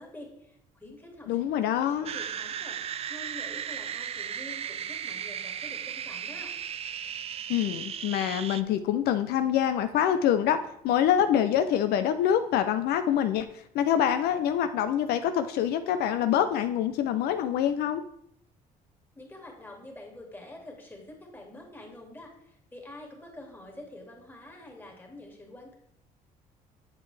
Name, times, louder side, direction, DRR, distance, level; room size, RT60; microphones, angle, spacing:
voice 1, 0.0-6.5 19.1-25.7, left 1 dB, 10° left, 0 dB, 2.1 m, -47 dB
voice 2, 1.3-2.1 7.5-10.6 10.8-18.0, left 10 dB, 75° left, 9 dB, 0.5 m, -25 dB
sound 1, 2.1-8.6, right 9 dB, 40° right, 0.4 m, -36 dB
8.1 x 6.8 x 3.3 m, 0.74 s
cardioid pair, 100°, 16 cm